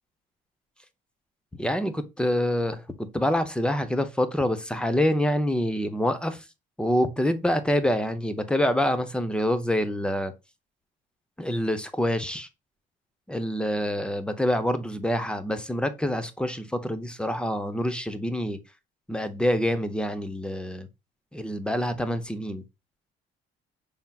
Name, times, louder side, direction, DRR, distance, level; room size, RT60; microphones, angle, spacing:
voice 1, 1.5-6.4 6.8-10.3 11.4-12.5 13.3-18.6 19.1-20.9 21.3-22.6, left 1 dB, 5° left, 0.7 m, -26 dB
5.6 x 3.6 x 2.3 m
cardioid pair, 110°, 17 cm